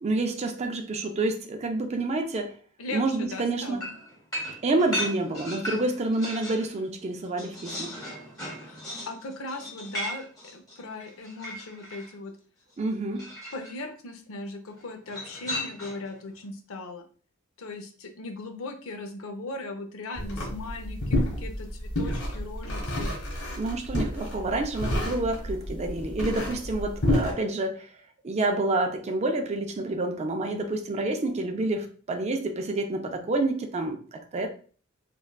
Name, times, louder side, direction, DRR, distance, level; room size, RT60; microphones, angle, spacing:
voice 1, 0.0-2.5 2.9-3.8 4.6-7.9 12.8-13.3 23.5-27.9 28.2-34.5, right 2 dB, 30° right, 4 dB, 0.4 m, -28 dB
voice 2, 2.8-3.9 8.5-10.3 10.5-12.3 13.5-17.0 17.6-23.1, left 2 dB, 70° left, 4 dB, 0.6 m, -38 dB
sound 1, 3.8-6.7 7.1-12.1 13.2-13.8 15.1-16.1, equal, 20° left, 1.0 m, -36 dB
sound 2, 20.2-27.3, left 1 dB, 85° left, 1.2 m, -29 dB
3.4 x 2.3 x 2.3 m, 0.42 s
head